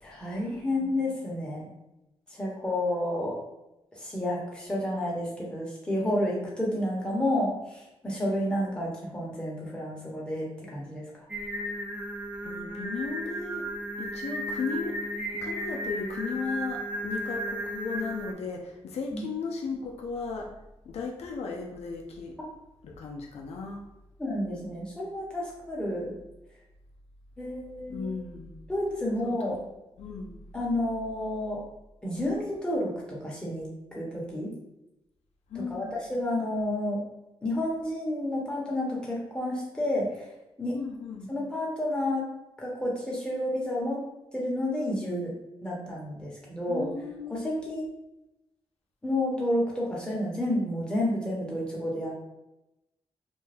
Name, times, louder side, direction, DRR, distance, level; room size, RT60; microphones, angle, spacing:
voice 1, 0.0-1.7 2.3-3.4 4.0-11.0 19.1-19.2 22.4-22.5 24.2-26.2 27.4-28.1 28.7-29.6 30.5-31.6 32.0-34.5 35.7-37.0 37.4-40.1 40.6-40.8 41.3-42.2 42.6-44.0 44.3-45.3 45.6-46.9 47.3-47.8 49.0-52.1, left 1 dB, 10° left, -4 dB, 1.0 m, -30 dB
Singing, 11.3-18.3, right 1 dB, 10° right, 0.5 m, -34 dB
voice 2, 12.4-13.7 14.0-15.0 15.4-20.5 20.9-22.4 22.8-23.8 27.9-28.6 29.2-29.5 30.0-30.4 35.5-36.0 40.7-41.4 46.7-47.7, left 4 dB, 85° left, 1 dB, 0.4 m, -36 dB
2.5 x 2.2 x 3.3 m, 0.92 s
cardioid pair, 80°, 11 cm